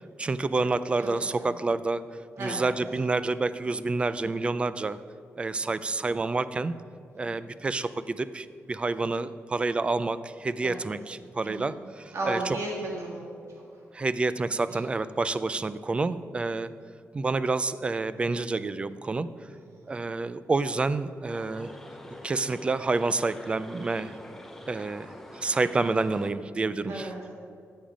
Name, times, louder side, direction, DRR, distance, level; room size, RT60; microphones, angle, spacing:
voice 1, 0.2-2.0 2.4-5.0 5.4-6.7 7.2-12.6 13.9-16.7 17.1-19.3 19.9-21.7 22.2-24.2 24.7-27.1, right 3 dB, 20° right, 14 dB, 0.3 m, -28 dB
voice 2, 2.4-2.7 7.1-7.2 10.6-10.8 11.4-11.7 12.1-13.3 14.7-14.8 19.7-19.8 26.9-27.3, right 2 dB, 65° right, -3 dB, 1.7 m, -34 dB
sound 1, 21.2-26.4, left 1 dB, 5° left, 0.7 m, -45 dB
14.0 x 7.2 x 5.1 m, 2.3 s
wide cardioid pair, 180°, 5 cm